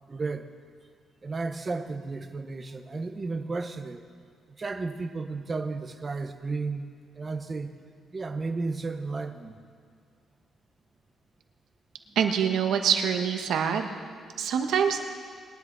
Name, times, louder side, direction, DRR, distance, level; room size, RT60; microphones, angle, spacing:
voice 1, 0.1-0.5 1.2-4.0 4.5-7.7 8.1-9.6, right 3 dB, 25° right, 6 dB, 0.8 m, -33 dB
voice 2, 12.2-13.9 14.4-15.0, right 7 dB, 80° right, 5 dB, 1.1 m, -25 dB
21.0 x 10.5 x 4.0 m, 2.1 s
cardioid pair, 145°, 0 cm